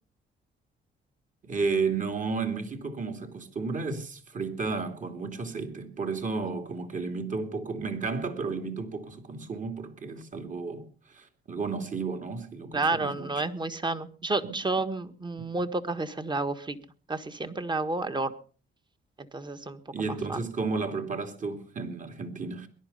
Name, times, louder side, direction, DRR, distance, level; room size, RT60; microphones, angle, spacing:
voice 1, 1.4-13.3 14.4-14.5 19.9-22.7, right 4 dB, 40° right, 2.7 m, -33 dB
voice 2, 12.7-16.8 17.1-18.3 19.2-19.8 20.1-20.4, right 3 dB, 20° right, 1.6 m, -30 dB
20.5 x 11.5 x 5.5 m
cardioid pair, 90°, 20 cm